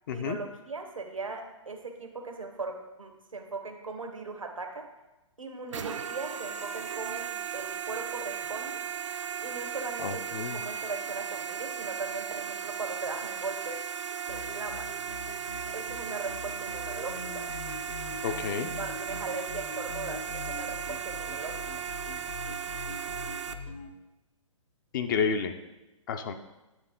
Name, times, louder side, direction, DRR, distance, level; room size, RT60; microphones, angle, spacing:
voice 1, 0.1-4.8 5.4-7.2 7.5-8.8 9.4-13.8 14.3-14.9 15.7-17.4 18.8-21.6, right 3 dB, 85° right, 4 dB, 1.1 m, -39 dB
sound 1, 5.7-23.5, right 8 dB, 70° right, 0.5 m, -36 dB
voice 2, 10.0-10.6 18.2-18.7 24.9-25.5 26.1-26.3, left 6 dB, 40° left, 7 dB, 0.5 m, -30 dB
sound 2, 14.3-23.9, left 4 dB, 75° left, 1.0 m, -43 dB
9.9 x 3.5 x 3.7 m, 1.0 s
figure-of-eight pair, 125°, 17 cm